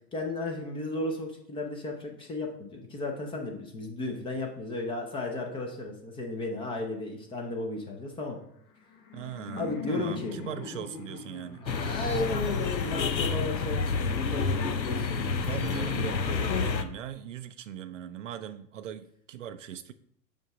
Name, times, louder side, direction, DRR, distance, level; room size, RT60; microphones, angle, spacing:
voice 1, 0.1-8.4 9.6-10.4 11.6-15.4, left 2 dB, 10° left, 2 dB, 0.5 m, -34 dB
Laughter, 8.6-13.6, left 5 dB, 65° left, 1.3 m, -44 dB
voice 2, 9.1-11.6 15.4-19.9, right 9 dB, 50° right, 11 dB, 0.5 m, -39 dB
sound 1, 11.7-16.8, left 5 dB, 90° left, 0.7 m, -29 dB
5.5 x 5.2 x 4.8 m, 0.69 s
figure-of-eight pair, 100°, 50 cm